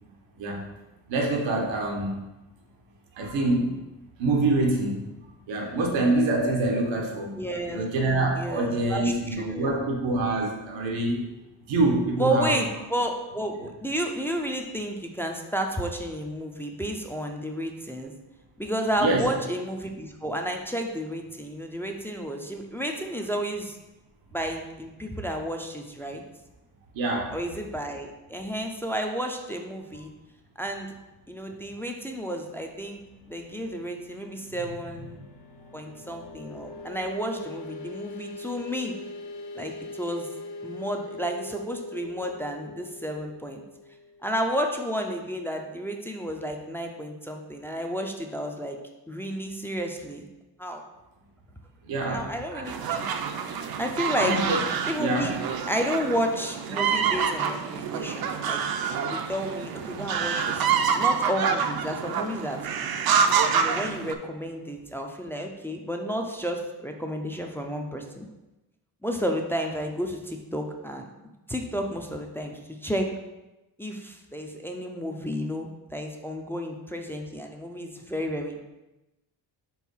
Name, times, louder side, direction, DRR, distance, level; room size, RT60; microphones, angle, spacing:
voice 1, 1.1-2.2 3.1-3.8 4.2-5.0 5.5-7.4 7.7-11.3 11.7-12.5 19.0-19.3 26.9-27.3 51.8-52.7 54.1-54.6 55.0-55.3, right 2 dB, 90° right, 0 dB, 1.2 m, -25 dB
voice 2, 7.4-7.8 8.4-9.8 12.2-18.1 18.6-23.8 24.3-26.2 27.3-30.1 30.6-30.9 31.3-33.0 33.3-35.2 35.7-38.9 39.6-40.3 40.6-43.6 44.2-48.8 49.1-50.2 50.6-50.8 52.1-53.1 53.8-54.3 54.9-55.3 55.7-58.6 59.0-62.6 63.5-68.3 69.0-71.1 71.5-73.1 73.8-78.6, equal, 5° left, 2 dB, 0.4 m, -31 dB
sound 1, 32.3-44.9, left 2 dB, 65° left, 0.9 m, -42 dB
sound 2, 52.7-64.1, right 6 dB, 55° right, 0.6 m, -27 dB
4.6 x 3.9 x 5.5 m, 1.0 s
cardioid pair, 135°, 44 cm